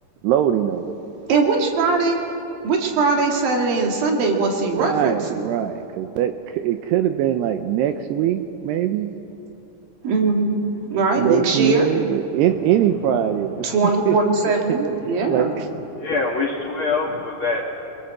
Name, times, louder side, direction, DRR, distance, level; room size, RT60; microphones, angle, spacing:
voice 1, 0.2-1.0 4.8-9.1 11.2-13.7 14.1-14.2 14.7-14.8 15.3-15.7, right 10 dB, 75° right, 2.5 m, -22 dB
voice 2, 1.3-2.2 2.6-5.5 10.0-11.9 13.6-15.6, right 3 dB, 55° right, 3.6 m, -20 dB
voice 3, 15.0-15.4 15.9-17.7, left 3 dB, 85° left, 1.1 m, -25 dB
28.0 x 21.0 x 7.9 m
omnidirectional pair, 5.3 m